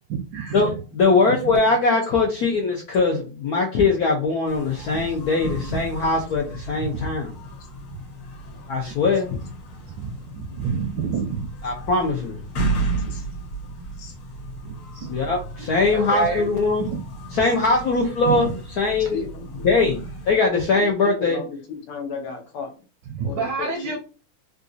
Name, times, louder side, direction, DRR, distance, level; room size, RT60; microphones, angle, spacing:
voice 1, 0.1-0.8 1.3-1.6 6.7-6.9 8.9-9.0 9.8-11.5 14.6-15.1 15.6-16.5 16.8-17.0 18.2-18.4 23.1-24.0, right 6 dB, 70° right, 2 dB, 1.1 m, -29 dB
voice 2, 0.9-7.2 8.7-9.4 11.6-12.4 15.1-16.9 17.3-18.5 18.8-19.2 19.6-20.0 20.3-21.4, left 3 dB, 85° left, 0 dB, 0.8 m, -21 dB
sound 1, 4.4-20.4, right 2 dB, 50° left, 1.2 m, -34 dB
voice 3, 19.1-19.6 20.7-22.7 23.2-24.0, left 5 dB, 70° left, 2 dB, 1.6 m, -34 dB
3.8 x 2.4 x 2.6 m, 0.33 s
omnidirectional pair, 2.4 m